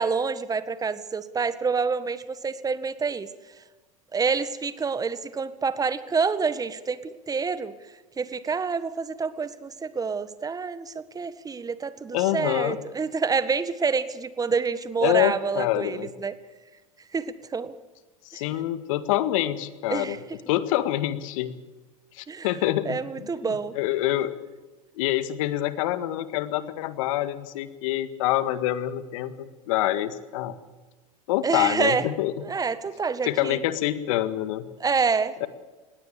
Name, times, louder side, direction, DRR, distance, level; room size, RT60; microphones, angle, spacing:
voice 1, 0.0-3.3 4.1-7.7 8.2-16.3 17.1-17.7 18.3-18.4 19.9-20.2 22.3-22.5 22.8-23.7 31.4-32.0 32.4-33.6 34.8-35.5, right 5 dB, 20° right, 14 dB, 1.6 m, -27 dB
voice 2, 12.1-12.8 15.0-16.1 18.3-20.2 20.5-21.5 22.1-23.3 23.8-24.4 24.9-30.6 31.3-32.5 33.2-34.7 35.4-35.5, left 14 dB, 65° left, 13 dB, 1.8 m, -26 dB
20.0 x 17.0 x 8.5 m, 1.2 s
hypercardioid pair, 90°, 18 cm